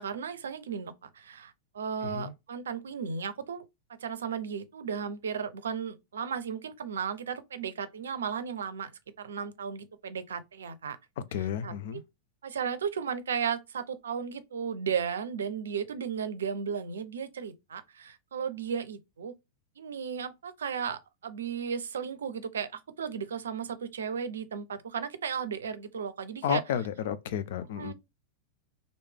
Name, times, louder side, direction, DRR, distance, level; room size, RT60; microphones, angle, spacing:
voice 1, 0.0-3.6 4.0-8.9 9.2-11.0 11.6-12.0 12.4-19.3 19.8-26.6 27.8-27.9, right 7 dB, 75° right, 0.5 m, -35 dB
voice 2, 11.3-12.0 26.4-27.9, left 9 dB, 60° left, 0.4 m, -32 dB
3.2 x 2.6 x 3.4 m
hypercardioid pair, 95°, 0 cm